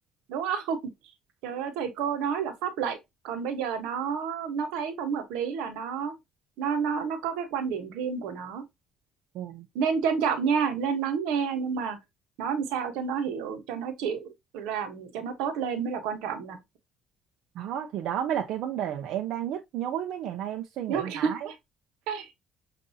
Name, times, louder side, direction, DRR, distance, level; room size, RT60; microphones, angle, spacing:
voice 1, 0.3-0.9 1.4-3.0 3.2-6.1 6.6-8.6 9.7-12.0 12.4-16.6 20.9-21.5 22.1-22.3, right 6 dB, 90° right, 1.1 m, -30 dB
voice 2, 9.3-9.6 17.6-21.4, right 10 dB, 75° right, 0.6 m, -32 dB
6.3 x 2.6 x 2.7 m
cardioid pair, 105°, 0 cm